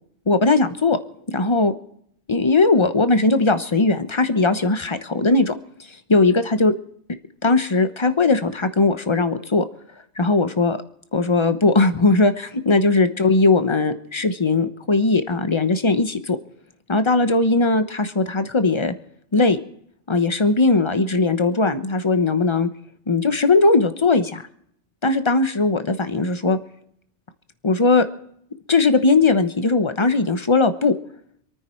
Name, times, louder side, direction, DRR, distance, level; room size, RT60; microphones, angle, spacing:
voice 1, 0.3-1.0 1.3-1.7 2.3-5.5 6.1-6.7 7.4-9.6 10.2-10.8 11.1-16.4 16.9-18.9 19.3-19.6 20.1-22.7 23.1-24.4 25.0-26.6 27.6-28.1 28.7-30.9, left 3 dB, 25° left, 10 dB, 1.0 m, -19 dB
27.0 x 9.6 x 4.5 m, 0.69 s
omnidirectional pair, 1.2 m